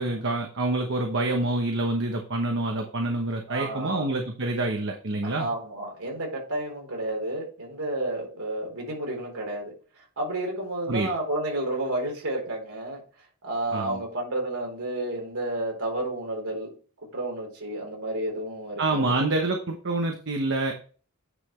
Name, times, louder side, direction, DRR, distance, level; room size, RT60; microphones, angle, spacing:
voice 1, 0.0-5.5 10.9-11.1 13.7-14.0 18.8-20.7, right 2 dB, 55° right, 3 dB, 1.0 m, -27 dB
voice 2, 3.5-4.1 5.2-9.7 10.2-13.0 13.4-16.7 17.1-19.3, right 1 dB, 75° right, 0 dB, 4.0 m, -31 dB
9.6 x 5.7 x 3.2 m, 0.39 s
head